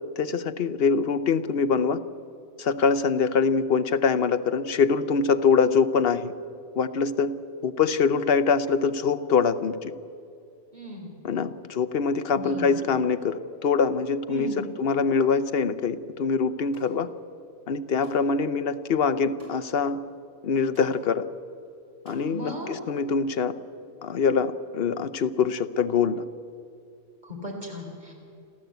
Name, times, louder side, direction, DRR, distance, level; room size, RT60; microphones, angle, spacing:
voice 1, 0.2-2.0 2.6-6.3 6.8-7.3 7.6-9.9 11.2-17.1 17.7-20.0 20.4-21.2 22.0-23.5 24.0-26.2, left 5 dB, 55° left, 11 dB, 1.0 m, -24 dB
voice 2, 10.7-11.2 12.3-12.8 14.3-14.7 22.3-22.8 27.2-28.1, left 1 dB, 35° right, 0 dB, 4.8 m, -36 dB
sound 1, 16.4-16.9 17.5-18.2 18.6-19.6 20.1-20.2 20.4-21.0 21.2-22.2 22.5-22.6, right 1 dB, 75° right, 7.4 m, -53 dB
29.5 x 13.0 x 8.1 m, 2.5 s
omnidirectional pair, 1.2 m